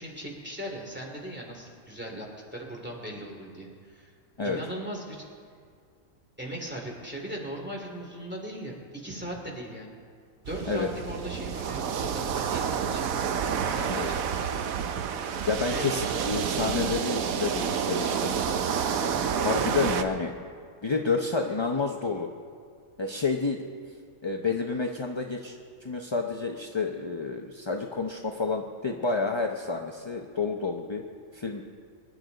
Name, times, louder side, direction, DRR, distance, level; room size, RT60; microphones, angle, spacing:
voice 1, 0.0-4.1 4.4-5.2 6.4-10.0 10.4-13.0 13.7-14.2 15.7-15.9, right 1 dB, 5° right, -1 dB, 2.7 m, -38 dB
sound 1, 10.4-20.0, right 7 dB, 90° right, 1.2 m, -29 dB
voice 2, 15.5-18.3 19.4-20.4 20.8-22.3 23.0-23.6 24.2-31.0 31.3-31.6, left 4 dB, 30° left, 2 dB, 0.6 m, -29 dB
25.0 x 11.0 x 4.0 m, 2.2 s
omnidirectional pair, 1.4 m